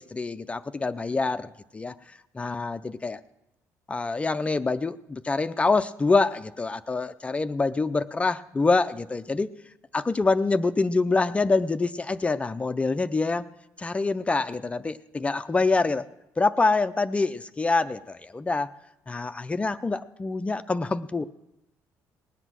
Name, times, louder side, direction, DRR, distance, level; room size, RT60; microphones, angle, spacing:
voice 1, 0.0-1.9 2.3-3.2 3.9-9.5 9.9-13.4 13.8-16.1 16.4-18.7 19.1-21.3, left 3 dB, 20° left, 11 dB, 0.4 m, -26 dB
19.0 x 8.0 x 6.1 m, 0.88 s
cardioid pair, 100°, 6 cm